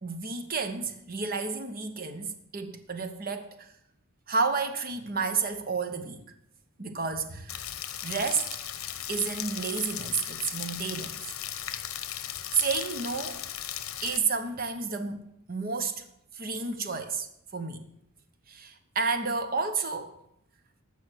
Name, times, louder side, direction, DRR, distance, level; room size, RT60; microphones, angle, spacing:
voice 1, 0.0-3.7 4.3-6.2 6.8-7.7 8.0-8.5 9.1-11.2 12.5-13.5 14.0-15.2 15.5-16.0 16.3-17.9 18.5-20.1, right 4 dB, 45° right, 1.0 m, -31 dB
Rain, 7.5-14.2, left 11 dB, 75° left, 0.9 m, -37 dB
14.0 x 5.5 x 6.3 m
head